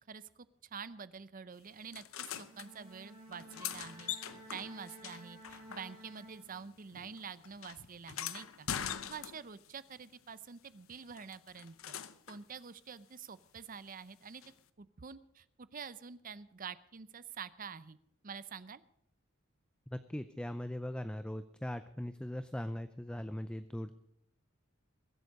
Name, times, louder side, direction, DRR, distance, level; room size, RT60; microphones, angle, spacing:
voice 1, 0.1-4.2 4.5-8.7 9.1-11.9 12.3-14.4 14.8-18.0 18.2-18.8, right 6 dB, 45° right, 16 dB, 0.6 m, -47 dB
sound 1, 1.9-2.7 3.3-6.3 6.5-9.7 11.2-12.4 14.4-14.5, left 9 dB, 85° left, 0.8 m, -43 dB
Bowed string instrument, 2.3-7.0, right 1 dB, 70° right, 6.3 m, -54 dB
voice 2, 19.9-23.9, left 1 dB, 5° left, 11 dB, 0.5 m, -40 dB
22.0 x 8.2 x 5.3 m, 0.77 s
head